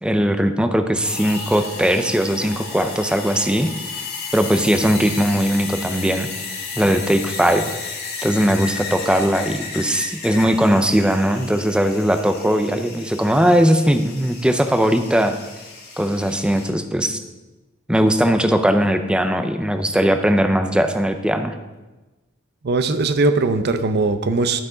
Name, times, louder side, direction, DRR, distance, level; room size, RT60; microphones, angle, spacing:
voice 1, 0.0-3.7 4.3-6.3 6.8-7.7 8.2-15.4 16.0-17.2 17.9-21.6, equal, 5° right, 8 dB, 0.5 m, -19 dB
sound 1, 1.0-16.7, left 4 dB, 55° left, 1.8 m, -33 dB
voice 2, 22.6-24.6, right 3 dB, 55° right, 10 dB, 0.6 m, -19 dB
11.5 x 6.1 x 3.8 m, 1.1 s
head